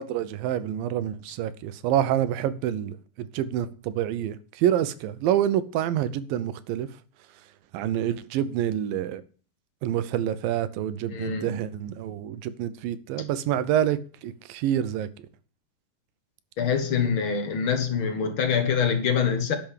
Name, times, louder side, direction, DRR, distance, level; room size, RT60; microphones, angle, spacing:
voice 1, 0.0-6.9 7.7-9.2 9.8-15.1, right 11 dB, 85° right, 2.6 m, -27 dB
voice 2, 11.1-11.6 16.6-19.6, left 6 dB, 50° left, 1.7 m, -25 dB
10.5 x 6.5 x 7.3 m
omnidirectional pair, 4.0 m